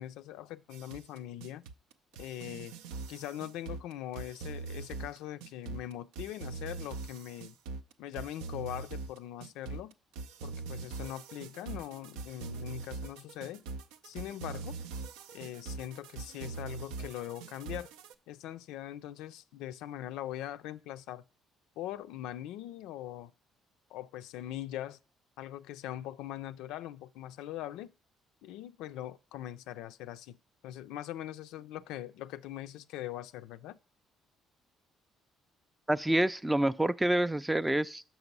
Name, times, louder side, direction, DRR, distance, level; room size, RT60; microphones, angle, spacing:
voice 1, 0.0-1.6 2.2-2.7 3.1-7.6 8.0-9.9 10.4-13.6 14.0-14.8 15.3-17.9 18.3-21.2 21.8-23.3 23.9-25.0 25.4-27.9 28.4-30.4 30.6-33.8, left 13 dB, 80° left, 0.3 m, -41 dB
sound 1, 0.7-18.1, right 4 dB, 90° right, 0.4 m, -42 dB
voice 2, 35.9-38.0, right 1 dB, 10° right, 0.3 m, -27 dB
6.0 x 6.0 x 5.3 m
supercardioid pair, 75°, 0 cm